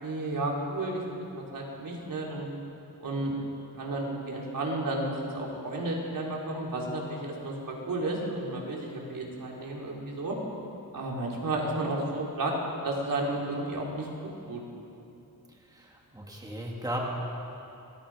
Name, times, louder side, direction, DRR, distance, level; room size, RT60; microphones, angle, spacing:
voice 1, 0.0-1.0 1.3-2.5 3.0-3.4 3.7-10.4 10.9-12.5 12.8-14.1 14.5-14.6, right 2 dB, 65° right, -3 dB, 4.4 m, -32 dB
voice 2, 15.7-17.1, equal, 10° right, -2 dB, 2.7 m, -35 dB
26.5 x 21.0 x 5.2 m, 2.8 s
wide cardioid pair, 160°, 35 cm